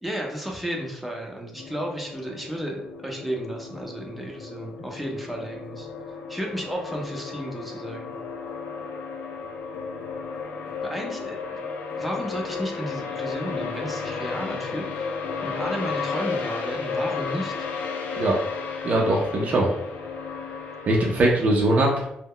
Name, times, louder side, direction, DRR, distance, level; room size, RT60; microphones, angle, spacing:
voice 1, 0.0-5.9 6.3-8.1 10.8-11.4 11.9-15.1 15.4-17.7, equal, ahead, -1 dB, 0.6 m, -33 dB
sound 1, 1.6-21.3, left 5 dB, 85° left, 0.4 m, -33 dB
voice 2, 18.8-19.7 20.8-21.9, right 2 dB, 50° right, -2 dB, 0.5 m, -21 dB
2.0 x 2.0 x 3.7 m, 0.78 s
cardioid pair, 90°, 3 cm